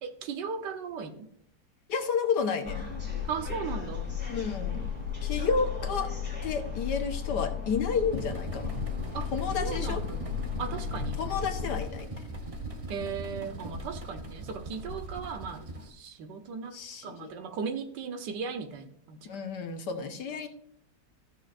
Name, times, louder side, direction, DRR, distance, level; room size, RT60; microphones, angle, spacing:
voice 1, 0.0-1.3 3.2-4.1 8.7-8.8 9.1-9.3 9.6-10.3 10.6-11.2 12.9-19.3, right 5 dB, 80° right, 7 dB, 1.6 m, -37 dB
voice 2, 1.9-2.9 4.3-4.9 5.2-6.1 6.4-8.8 9.3-10.0 11.2-12.1 16.7-17.3 19.2-20.5, left 5 dB, 75° left, 5 dB, 1.7 m, -31 dB
sound 1, 2.6-11.8, left 8 dB, 5° right, 3.0 m, -34 dB
sound 2, 8.1-15.9, right 2 dB, 30° right, 0.7 m, -40 dB
14.5 x 6.3 x 2.5 m, 0.73 s
omnidirectional pair, 1.8 m